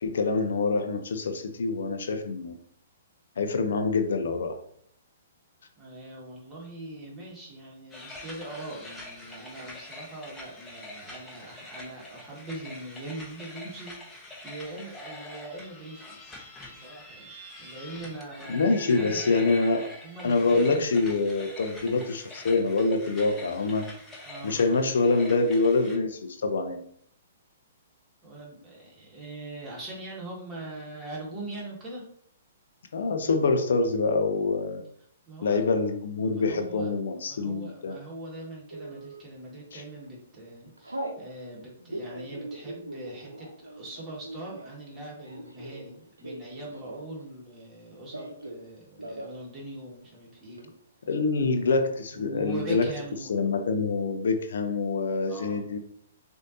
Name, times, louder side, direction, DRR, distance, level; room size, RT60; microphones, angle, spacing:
voice 1, 0.0-2.5 3.4-4.6 18.5-19.9 20.2-23.9 24.4-26.8 32.9-34.8 35.4-38.0 39.7-39.8 51.1-52.9 53.3-55.8, left 3 dB, 65° left, 6 dB, 0.5 m, -25 dB
voice 2, 5.8-17.3 17.6-19.4 20.0-20.8 24.3-24.6 28.2-32.0 35.3-35.6 36.2-36.9 37.2-50.7 52.1-53.3 55.2-55.7, right 2 dB, 20° right, -4 dB, 1.7 m, -42 dB
sound 1, 7.9-26.0, left 1 dB, 10° left, 1.0 m, -44 dB
Telephone, 38.7-39.2 39.8-40.1 40.3-41.2 41.8-47.3 47.5-48.6 48.9-49.4 49.7-49.8 50.0-50.6, right 1 dB, 85° right, 0.7 m, -40 dB
6.2 x 2.6 x 2.7 m, 0.66 s
figure-of-eight pair, 120°, 0 cm